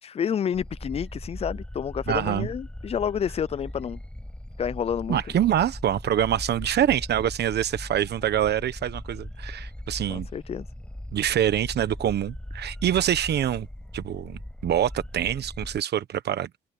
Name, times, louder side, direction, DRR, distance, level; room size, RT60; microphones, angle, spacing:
voice 1, 0.0-4.0 4.6-5.2 10.1-10.7, left 8 dB, 35° left, 0.4 m, -29 dB
sound 1, 0.5-15.8, left 1 dB, 5° left, 7.2 m, -39 dB
voice 2, 2.1-2.5 5.1-10.3 11.1-13.7 13.9-16.5, right 10 dB, 70° right, 1.2 m, -25 dB
cardioid pair, 85°, 18 cm